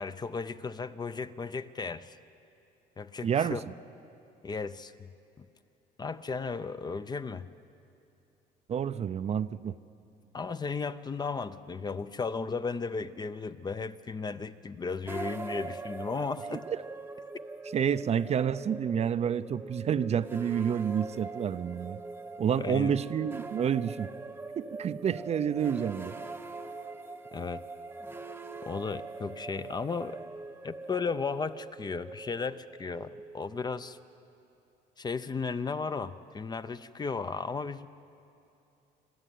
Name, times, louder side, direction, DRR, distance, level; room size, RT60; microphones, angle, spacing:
voice 1, 0.0-2.2 3.0-3.6 4.4-5.1 5.4-5.5 6.0-7.5 10.3-16.7 22.6-22.9 27.3-27.7 28.6-30.2 30.6-34.0 35.0-37.9, left 4 dB, 25° left, 12 dB, 0.6 m, -35 dB
voice 2, 3.2-3.6 8.7-9.8 16.5-16.6 17.7-22.0 22.4-24.1 24.6-26.1, right 8 dB, 40° right, 13 dB, 0.5 m, -29 dB
sound 1, 15.0-34.2, right 3 dB, 10° right, 1.0 m, -43 dB
25.0 x 12.5 x 9.3 m, 2.7 s
cardioid pair, 110°, 17 cm